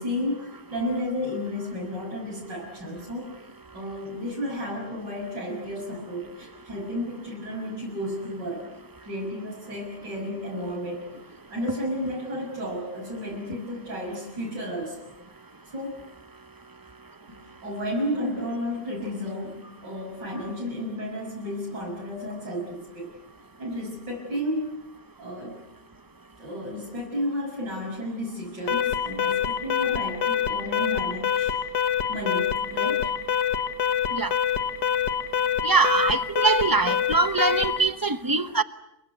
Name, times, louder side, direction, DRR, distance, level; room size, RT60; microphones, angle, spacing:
voice 1, 0.0-3.3 3.7-8.7 9.0-11.1 11.5-15.1 15.7-16.1 17.3-23.1 23.6-24.9 25.2-25.6 26.4-31.5 32.1-33.1, left 1 dB, 80° right, 7.1 m, -32 dB
Alarm, 28.7-37.9, left 8 dB, 75° left, 2.1 m, -25 dB
voice 2, 35.6-38.6, right 4 dB, 20° right, 0.7 m, -23 dB
29.5 x 23.0 x 8.1 m
omnidirectional pair, 1.9 m